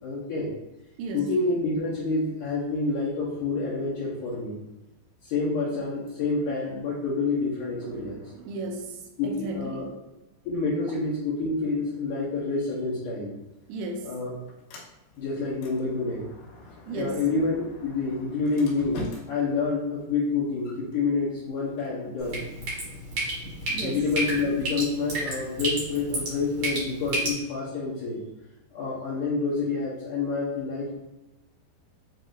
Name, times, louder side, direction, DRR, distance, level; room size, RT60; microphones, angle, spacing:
voice 1, 0.0-0.5 1.1-4.6 5.2-8.2 9.2-9.9 10.5-13.4 14.0-14.3 15.2-16.3 16.9-17.6 17.8-22.4 23.8-28.2 28.7-30.9, left 3 dB, 75° left, -9 dB, 1.9 m, -28 dB
voice 2, 1.0-1.3 7.8-10.0 10.9-11.0 13.7-14.1 16.9-17.2 23.7-24.0, right 2 dB, 85° right, 2 dB, 2.8 m, -35 dB
Sliding door, 13.4-23.4, left 2 dB, 90° left, 3.3 m, -46 dB
Drip, 22.2-27.3, right 1 dB, 70° right, 1.3 m, -31 dB
7.8 x 2.7 x 2.5 m, 0.97 s
omnidirectional pair, 5.1 m